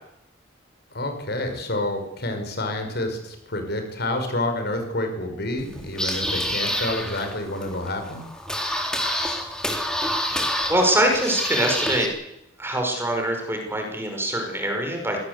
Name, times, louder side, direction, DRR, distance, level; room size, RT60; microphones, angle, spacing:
voice 1, 0.9-8.2, left 1 dB, 60° left, 6 dB, 5.5 m, -28 dB
sound 1, 5.6-12.1, equal, 5° left, 3.8 m, -28 dB
voice 2, 10.7-12.1 12.6-15.2, right 1 dB, 15° right, 3 dB, 5.6 m, -23 dB
25.0 x 17.5 x 8.3 m, 0.85 s
head